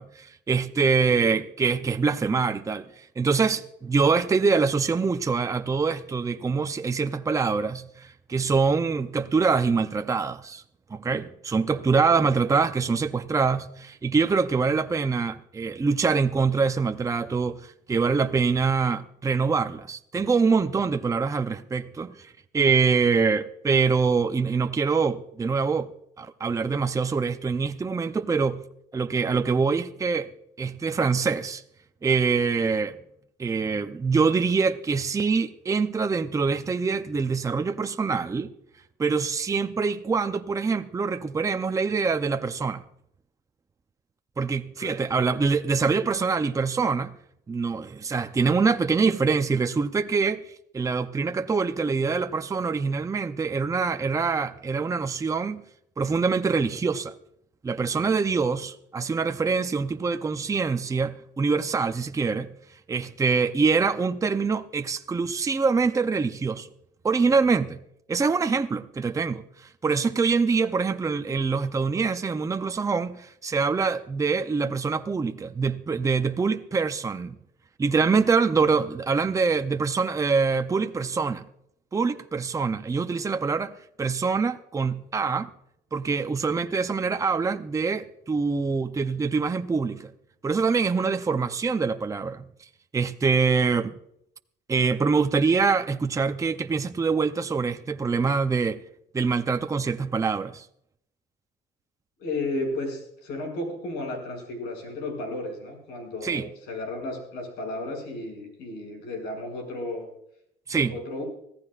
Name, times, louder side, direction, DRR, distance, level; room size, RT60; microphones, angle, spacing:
voice 1, 0.0-2.9 3.2-10.6 10.9-22.1 22.5-25.9 26.2-28.6 28.9-30.3 30.6-31.6 32.0-33.0 33.4-38.5 39.0-42.8 44.4-47.1 47.5-50.4 50.7-55.6 56.0-57.1 57.6-62.5 62.9-66.7 67.0-67.8 68.1-77.4 77.8-81.4 81.9-83.7 84.0-85.5 85.9-90.1 90.4-92.4 92.9-93.9 94.7-98.8 99.1-100.7 106.2-106.5 110.7-110.9, right 5 dB, 20° right, 0.6 m, -24 dB
voice 2, 11.7-12.2 44.8-45.2 78.6-78.7 102.2-110.1 110.9-111.2, left 2 dB, 90° left, 6.5 m, -34 dB
24.5 x 15.5 x 2.5 m
cardioid pair, 110°, 17 cm